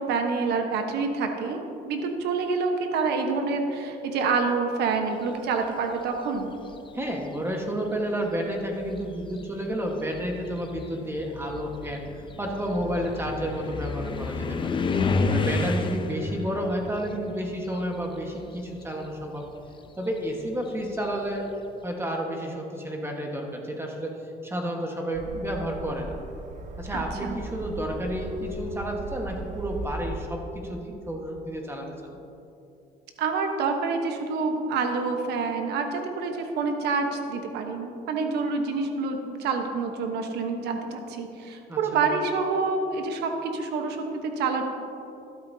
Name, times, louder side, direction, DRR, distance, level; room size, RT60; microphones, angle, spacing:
voice 1, 0.0-6.5 15.3-15.7 26.9-27.3 33.2-44.6, right 4 dB, 80° right, 4 dB, 1.1 m, -27 dB
sound 1, 6.4-6.9 7.9-8.0 8.6-18.5 18.8-21.4, left 4 dB, 30° left, 0.6 m, -31 dB
voice 2, 6.9-12.1 12.4-14.8 15.3-19.5 20.0-21.5 21.8-26.2 26.8-31.9 41.7-42.1, equal, 15° right, 1 dB, 1.4 m, -31 dB
sound 2, 25.1-30.2, right 2 dB, 45° right, 0.9 m, -38 dB
13.0 x 12.0 x 2.8 m, 2.8 s
cardioid pair, 110°, 17 cm